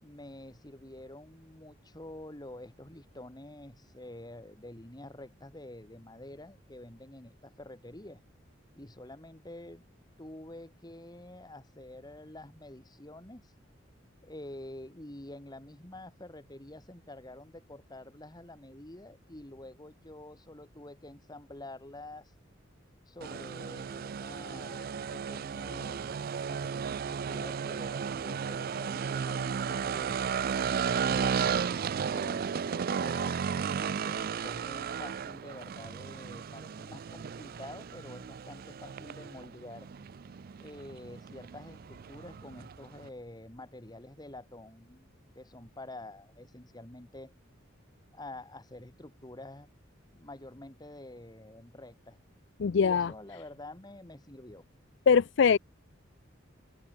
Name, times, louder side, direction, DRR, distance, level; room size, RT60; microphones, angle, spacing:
voice 1, 0.0-8.2 8.8-9.8 10.2-13.5 14.2-22.3 23.1-30.2 31.1-31.8 32.1-33.5 33.9-39.9 40.6-47.3 48.1-49.7 50.1-52.2 52.7-54.6, left 1 dB, 20° left, 2.1 m, -48 dB
sound 1, 23.2-43.1, right 6 dB, 50° right, 0.4 m, -34 dB
voice 2, 52.6-53.1 55.1-55.6, left 6 dB, 60° left, 0.4 m, -22 dB
open air
head